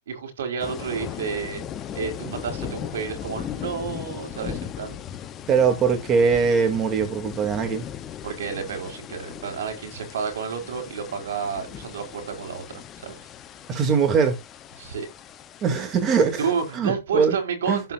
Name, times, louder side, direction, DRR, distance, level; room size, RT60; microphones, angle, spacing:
voice 1, 0.1-1.6 1.9-5.0 8.2-13.3 14.8-15.1 16.4-17.9, right 6 dB, 80° right, 4.7 m, -30 dB
sound 1, 0.6-16.8, left 9 dB, 25° left, 1.0 m, -38 dB
voice 2, 5.5-7.8 13.7-14.4 15.6-16.4 16.8-17.4 17.7-17.8, right 6 dB, 25° right, 2.8 m, -21 dB
16.0 x 5.4 x 2.7 m
hypercardioid pair, 140°, 0 cm